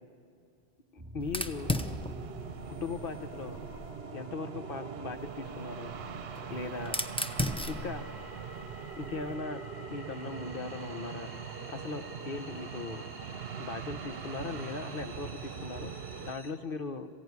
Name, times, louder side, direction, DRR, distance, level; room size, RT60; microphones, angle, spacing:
voice 1, 0.9-1.7 2.7-3.6 4.1-5.9 6.5-7.0 7.7-8.0 9.0-11.3 11.7-13.0 13.6-17.1, left 4 dB, 60° left, 8 dB, 1.1 m, -39 dB
sound 1, 1.0-16.5, equal, 20° right, 3.0 m, -49 dB
Fire, 1.2-4.0 5.1-9.3, left 1 dB, 5° left, 0.8 m, -37 dB
sound 2, 1.5-16.3, right 7 dB, 70° right, 0.9 m, -42 dB
26.5 x 15.5 x 9.6 m, 2.4 s
omnidirectional pair, 1.1 m